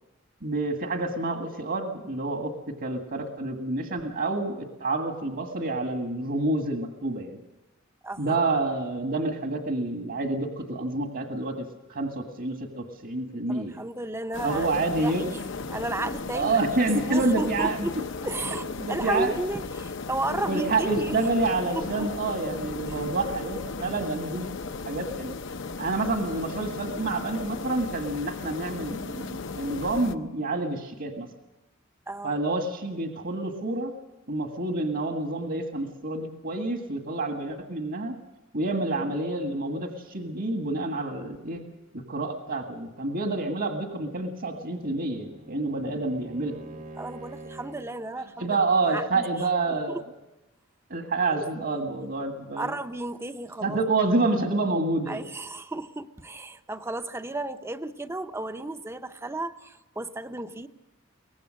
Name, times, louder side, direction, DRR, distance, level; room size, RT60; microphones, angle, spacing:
voice 1, 0.4-7.4 8.2-13.8 14.4-15.3 16.3-18.0 18.8-19.3 20.5-24.5 24.9-25.3 25.8-31.3 32.2-33.9 34.3-38.2 38.5-41.6 41.9-46.6 48.4-50.0 50.9-52.8 53.6-55.2, right 2 dB, 60° right, 4 dB, 1.8 m, -28 dB
voice 2, 8.0-8.4 13.5-15.4 15.7-16.6 17.0-17.9 18.2-21.2 21.7-22.1 22.9-23.0 32.1-32.3 47.0-48.6 48.9-49.3 49.7-50.0 51.3-51.5 52.6-53.8 55.1-60.7, right 2 dB, 15° right, 10 dB, 0.7 m, -33 dB
sound 1, 14.3-30.1, left 4 dB, 65° left, 0.8 m, -36 dB
Bowed string instrument, 44.2-48.1, right 1 dB, 45° right, 1.1 m, -45 dB
23.0 x 19.0 x 6.4 m, 1.0 s
head